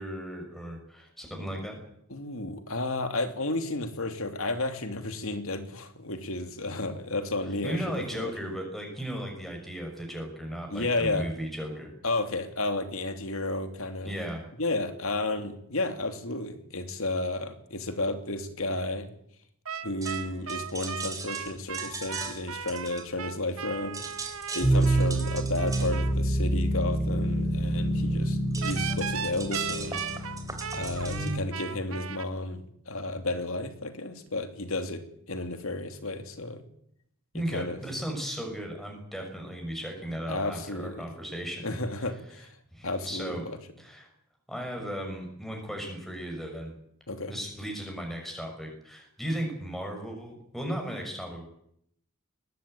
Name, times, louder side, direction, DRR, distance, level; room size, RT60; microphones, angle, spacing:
voice 1, 0.0-1.8 7.6-11.9 14.0-14.4 37.3-41.7 42.3-42.4 42.7-43.4 43.8-44.1 44.5-46.7 47.3-51.5, equal, ahead, 2 dB, 6.0 m, -36 dB
voice 2, 2.1-8.3 10.7-11.3 12.0-14.1 14.6-19.1 19.8-24.0 24.3-30.0 30.7-35.0 35.3-36.6 37.5-37.8 40.3-41.0 41.6-42.5 42.8-43.6 47.1-47.4, left 2 dB, 70° left, 8 dB, 2.9 m, -32 dB
sound 1, 19.6-26.1 28.6-32.3, right 7 dB, 70° right, 1.4 m, -37 dB
sound 2, 20.0-23.6 23.8-31.3, right 4 dB, 15° right, 3.5 m, -40 dB
sound 3, 24.6-31.3, right 1 dB, 25° left, 5.6 m, -27 dB
21.5 x 19.0 x 9.1 m, 0.72 s
head